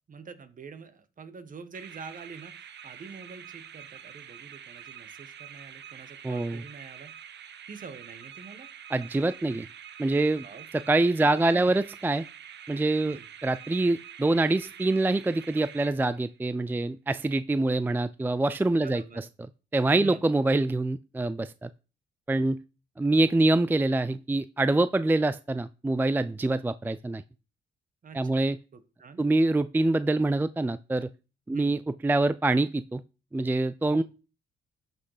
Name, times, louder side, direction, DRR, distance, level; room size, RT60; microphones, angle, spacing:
voice 1, 0.1-2.5 2.8-7.1 7.7-8.7 10.4-10.6 11.5-11.7 13.0-13.3 18.7-19.2 20.0-20.2 28.0-28.5 28.7-29.2 31.5-31.8 33.9-34.0, right 5 dB, 45° right, 12 dB, 1.4 m, -45 dB
sound 1, 1.7-16.4, right 9 dB, 60° right, 1.0 m, -46 dB
voice 2, 6.2-6.6 8.9-9.7 10.0-10.5 10.7-12.2 12.7-19.2 19.7-21.7 22.3-22.6 23.0-27.2 28.1-28.6 29.2-31.1 31.5-33.0 33.3-34.0, right 2 dB, 10° right, 15 dB, 0.4 m, -25 dB
11.5 x 6.6 x 4.9 m, 0.34 s
cardioid pair, 90°, 20 cm